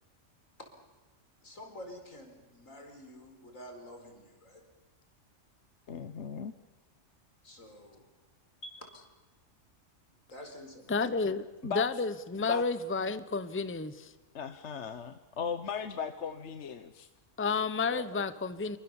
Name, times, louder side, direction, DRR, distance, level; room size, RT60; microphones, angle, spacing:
voice 1, 1.4-4.7 7.4-8.1 8.6-8.9 10.3-11.0 17.9-18.0, equal, 85° left, 4 dB, 5.0 m, -48 dB
voice 2, 5.9-6.5 11.7-11.9 12.5-12.6 14.3-17.1, left 6 dB, 65° left, 10 dB, 1.3 m, -37 dB
voice 3, 10.9-14.1 17.4-18.8, left 4 dB, 10° left, 13 dB, 0.8 m, -31 dB
26.5 x 24.0 x 7.2 m, 1.2 s
omnidirectional pair, 1.3 m